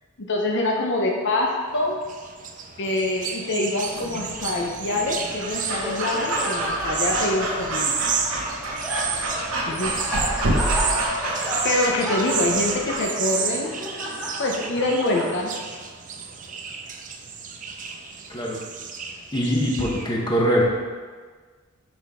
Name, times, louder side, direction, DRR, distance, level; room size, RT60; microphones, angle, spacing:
voice 1, 0.2-2.0 2.8-8.0 9.7-10.4 11.6-13.7 14.4-15.5, left 2 dB, 60° left, 0 dB, 0.8 m, -25 dB
sound 1, 1.7-20.1, right 6 dB, 40° right, 0.5 m, -31 dB
Breathing / Dog, 3.9-13.0, right 1 dB, 75° right, 1.1 m, -29 dB
Laughter, 5.2-15.7, equal, ahead, 1.6 m, -32 dB
voice 2, 19.3-20.6, equal, 20° left, -2 dB, 1.0 m, -22 dB
6.2 x 5.8 x 3.6 m, 1.5 s
head